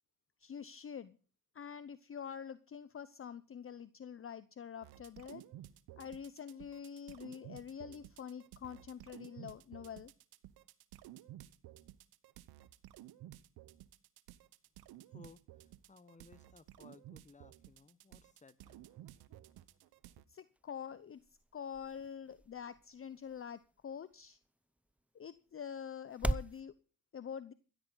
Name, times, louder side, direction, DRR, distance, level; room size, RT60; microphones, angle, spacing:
voice 1, 0.4-1.2 1.5-5.4 6.0-10.1 20.3-21.2 21.5-24.4 25.1-26.7 27.1-27.5, left 7 dB, 35° left, 15 dB, 0.8 m, -46 dB
sound 1, 4.8-20.2, right 13 dB, 80° right, 1.1 m, -54 dB
voice 2, 15.1-18.8, left 4 dB, 20° left, 16 dB, 1.1 m, -60 dB
sound 2, 20.3-26.6, right 1 dB, 5° right, 0.5 m, -43 dB
15.5 x 13.0 x 4.0 m, 0.37 s
cardioid pair, 75°, 38 cm